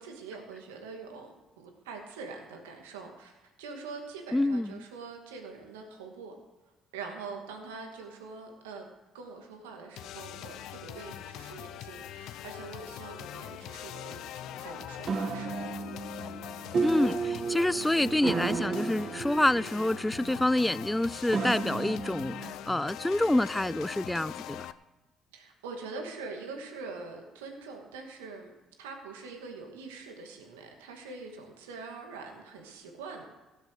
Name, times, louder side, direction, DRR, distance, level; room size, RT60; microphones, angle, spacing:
voice 1, 0.0-6.4 6.9-8.9 9.1-15.7 17.9-18.2 25.3-28.5 28.8-33.3, right 4 dB, 90° right, 2.3 m, -44 dB
voice 2, 4.3-4.8 16.8-22.3 22.7-24.6, left 1 dB, 10° left, 0.5 m, -27 dB
sound 1, 10.0-24.7, left 11 dB, 70° left, 0.7 m, -42 dB
sound 2, 15.1-22.5, right 4 dB, 50° right, 2.0 m, -34 dB
16.5 x 8.2 x 6.6 m
hypercardioid pair, 60°, 0 cm